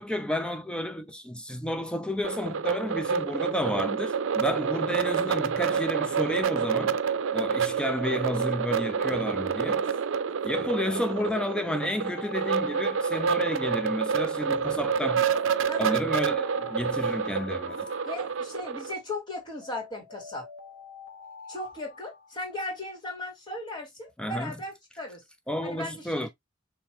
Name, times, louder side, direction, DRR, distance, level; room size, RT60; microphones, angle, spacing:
voice 1, 0.0-7.0 7.3-9.9 10.4-15.2 15.8-17.9 24.2-24.5 25.5-26.3, left 1 dB, 5° left, 0.4 m, -31 dB
sound 1, 2.2-18.9, right 6 dB, 85° right, 0.5 m, -28 dB
Alarm, 10.8-14.5 15.2-18.9 19.6-22.8, left 4 dB, 70° left, 1.3 m, -46 dB
voice 2, 18.0-20.5 21.5-25.2 25.6-26.3, left 1 dB, 25° left, 2.4 m, -37 dB
5.4 x 3.3 x 2.9 m
head